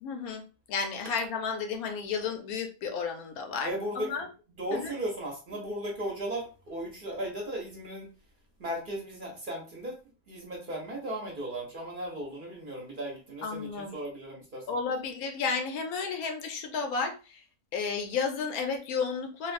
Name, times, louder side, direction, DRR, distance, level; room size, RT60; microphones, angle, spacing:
voice 1, 0.0-4.3 4.7-4.9 13.4-14.0 14.7-17.4 17.7-19.5, left 5 dB, 90° left, 5 dB, 1.1 m, -32 dB
voice 2, 3.6-4.3 4.6-8.1 8.6-10.0 10.3-14.8, right 1 dB, 45° right, -1 dB, 0.8 m, -36 dB
3.2 x 2.4 x 2.5 m, 0.34 s
omnidirectional pair, 1.5 m